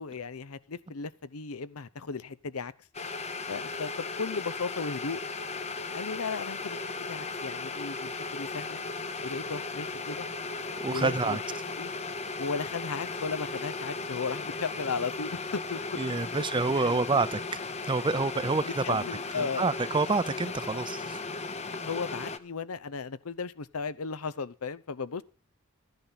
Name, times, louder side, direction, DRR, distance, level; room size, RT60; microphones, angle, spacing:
voice 1, 0.0-2.7 3.5-5.2 5.9-8.8 9.2-10.3 10.9-11.4 11.8-11.9 12.4-15.8 16.2-16.3 16.7-17.0 18.6-19.6 21.8-25.2, left 4 dB, 75° left, 0.7 m, -35 dB
sound 1, 2.9-22.4, left 3 dB, 30° left, 0.8 m, -36 dB
voice 2, 10.8-11.4 16.0-17.6 17.9-19.0 19.3-21.2, right 3 dB, 20° right, 0.6 m, -28 dB
13.0 x 10.5 x 5.8 m
head